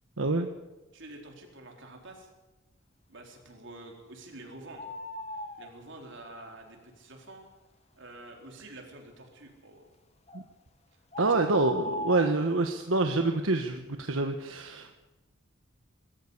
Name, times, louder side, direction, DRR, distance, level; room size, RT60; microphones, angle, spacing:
voice 1, 0.2-0.5 10.3-10.4 11.2-14.9, right 2 dB, 85° right, 5 dB, 1.3 m, -27 dB
voice 2, 0.9-2.3 3.1-4.9 5.3-7.5 8.0-9.9 11.2-11.4, right 2 dB, 65° right, 2 dB, 4.4 m, -48 dB
sound 1, 4.8-5.7 10.3-10.4 11.1-12.4, left 1 dB, 35° left, 1.9 m, -37 dB
23.0 x 14.0 x 8.2 m, 1.1 s
head